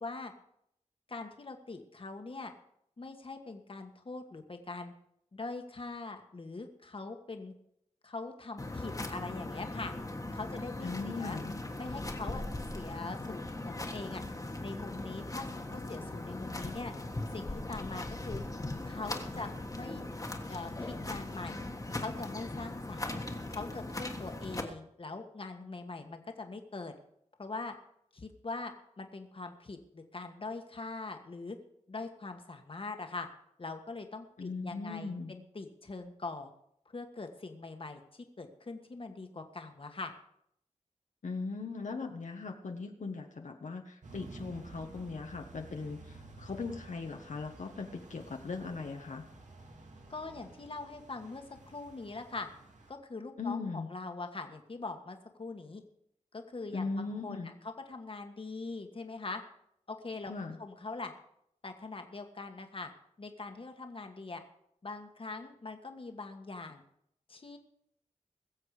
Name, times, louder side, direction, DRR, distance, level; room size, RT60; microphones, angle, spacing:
voice 1, 0.0-0.3 1.1-2.5 3.0-4.9 5.3-7.5 8.0-9.9 10.3-11.4 11.8-12.4 12.7-14.2 14.6-16.9 17.3-18.4 18.8-20.0 20.5-21.6 22.0-23.2 23.5-26.9 27.4-27.7 28.1-31.6 31.9-33.3 33.6-36.5 36.8-40.1 50.1-52.5 52.9-55.8 56.3-59.4 59.9-60.3 60.6-61.1 61.6-62.9 63.2-64.4 64.8-66.8 67.3-67.6, left 3 dB, 45° left, 5 dB, 1.5 m, -42 dB
sound 1, 8.6-24.6, left 2 dB, 25° left, 1.5 m, -39 dB
voice 2, 10.8-11.5 34.4-35.3 41.2-49.2 53.4-53.9 56.7-57.5 60.3-60.6, left 4 dB, 75° left, 3 dB, 1.3 m, -39 dB
sound 2, 44.0-52.9, right 3 dB, 75° right, 2.2 m, -52 dB
21.5 x 7.5 x 4.9 m, 0.75 s
wide cardioid pair, 95°, 13 cm